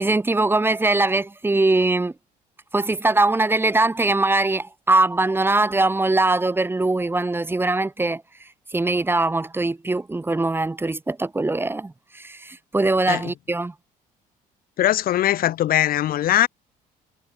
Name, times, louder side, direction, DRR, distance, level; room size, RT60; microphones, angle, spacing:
voice 1, 0.0-2.1 2.7-13.7, right 2 dB, 15° right, 1.6 m, -22 dB
voice 2, 14.8-16.5, left 12 dB, 60° left, 0.9 m, -20 dB
cardioid pair, 110°, 17 cm